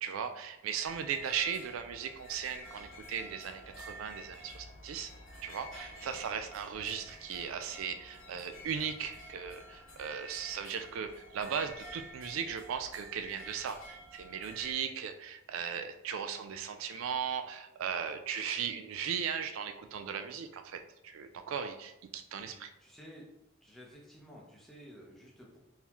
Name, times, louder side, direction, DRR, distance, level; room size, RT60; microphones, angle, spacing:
voice 1, 0.0-5.1 5.4-22.7, right 7 dB, 80° right, 8 dB, 0.3 m, -37 dB
sound 1, 0.8-14.7, right 1 dB, 75° left, 1.0 m, -50 dB
voice 2, 22.8-23.2 23.6-25.6, equal, ahead, -3 dB, 0.7 m, -53 dB
3.8 x 2.7 x 2.9 m, 0.85 s
head